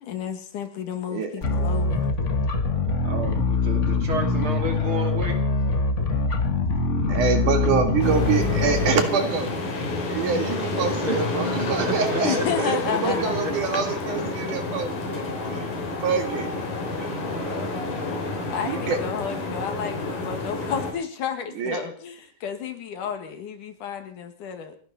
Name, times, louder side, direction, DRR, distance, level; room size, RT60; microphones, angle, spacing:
voice 1, 0.0-2.1 12.2-13.8 18.5-24.8, left 8 dB, 70° left, 7 dB, 3.3 m, -31 dB
sound 1, 1.4-9.0, left 3 dB, 40° left, 1.0 m, -23 dB
voice 2, 3.0-5.4 10.7-11.2 11.8-13.5 13.9-14.0 16.9-17.7, right 1 dB, 40° right, 4 dB, 3.2 m, -32 dB
voice 3, 7.1-9.5 10.1-15.2 15.5-16.5 18.6-19.0 21.6-21.9, right 6 dB, 70° right, 6 dB, 3.4 m, -26 dB
sound 2, 8.0-20.9, left 2 dB, 85° left, 4.9 m, -29 dB
30.0 x 11.5 x 4.2 m, 0.42 s
omnidirectional pair, 3.8 m